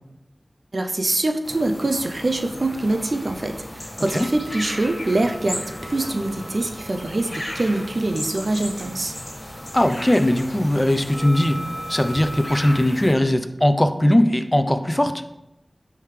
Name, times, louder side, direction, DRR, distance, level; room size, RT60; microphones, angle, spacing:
voice 1, 0.7-9.1, right 2 dB, 60° right, 6 dB, 0.5 m, -24 dB
sound 1, 1.4-13.1, left 1 dB, 45° left, 1.7 m, -36 dB
sound 2, 4.0-12.8, right 1 dB, 45° right, 1.2 m, -40 dB
voice 2, 9.7-11.6 11.9-15.2, left 1 dB, 20° left, 9 dB, 0.5 m, -19 dB
10.0 x 3.6 x 3.2 m, 0.88 s
wide cardioid pair, 65°, 0 cm